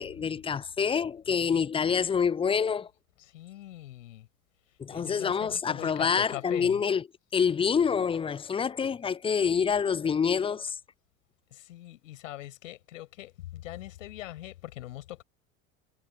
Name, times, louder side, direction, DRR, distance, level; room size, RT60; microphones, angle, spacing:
voice 1, 0.0-2.9 4.8-7.0 7.3-10.8, left 6 dB, 15° left, 0.5 m, -27 dB
voice 2, 3.2-4.3 4.9-6.8 11.5-15.2, left 15 dB, 65° left, 4.6 m, -42 dB
figure-of-eight pair, 65°, 41 cm